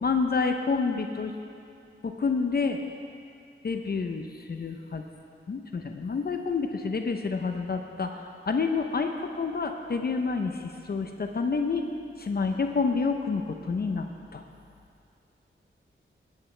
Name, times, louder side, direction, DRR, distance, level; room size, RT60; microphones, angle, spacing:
voice 1, 0.0-1.3 2.0-2.8 3.6-5.0 5.5-8.2 8.5-10.5 10.9-11.8 12.2-14.1 14.3-14.4, left 4 dB, 50° left, 5 dB, 0.7 m, -28 dB
19.0 x 9.3 x 3.3 m, 2.5 s
wide cardioid pair, 75°, 21 cm